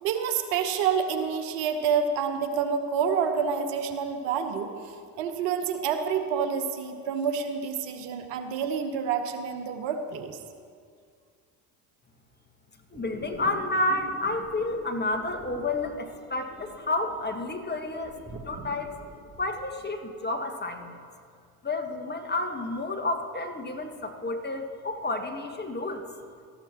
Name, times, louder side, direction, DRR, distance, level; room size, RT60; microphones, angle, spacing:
voice 1, 0.0-10.4, right 6 dB, 70° right, 7 dB, 1.3 m, -28 dB
voice 2, 12.9-18.9 19.4-21.1 21.6-26.1, left 2 dB, 20° left, 5 dB, 1.6 m, -30 dB
sound 1, 12.9-19.6, right 2 dB, 25° right, 3.3 m, -46 dB
18.0 x 14.0 x 3.0 m, 2.1 s
hypercardioid pair, 55°, 46 cm